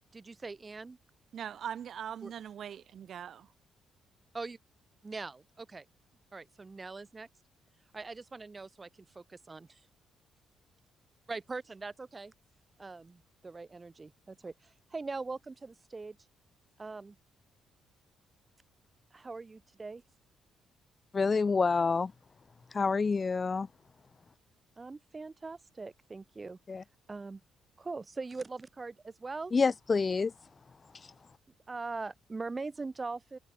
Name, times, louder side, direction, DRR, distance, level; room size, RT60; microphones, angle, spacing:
voice 1, 0.1-1.0 2.2-2.3 4.3-4.6 5.0-5.9 6.3-7.3 7.9-8.9 9.1-9.8 11.3-12.3 12.8-16.2 16.8-17.2 19.1-20.0 24.8-26.6 27.1-27.4 27.8-29.5 31.7-33.4, right 3 dB, 25° right, 7.9 m, -41 dB
voice 2, 1.3-3.5, right 9 dB, 60° right, 5.1 m, -41 dB
voice 3, 21.1-22.1 22.7-23.7 26.7-26.8 29.5-30.3, left 4 dB, 35° left, 0.8 m, -27 dB
cardioid pair, 90°, 0 cm